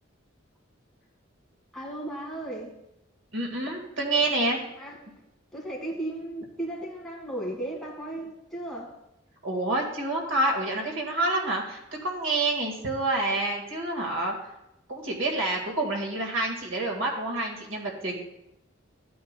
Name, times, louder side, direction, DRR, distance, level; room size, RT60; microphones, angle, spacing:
voice 1, 1.7-2.8 4.2-4.3 4.8-5.2 5.5-9.0, right 1 dB, ahead, -3 dB, 1.8 m, -36 dB
voice 2, 3.3-4.6 9.4-14.4 14.9-18.2, right 2 dB, 75° right, 1 dB, 1.8 m, -28 dB
14.0 x 8.6 x 2.2 m, 0.86 s
head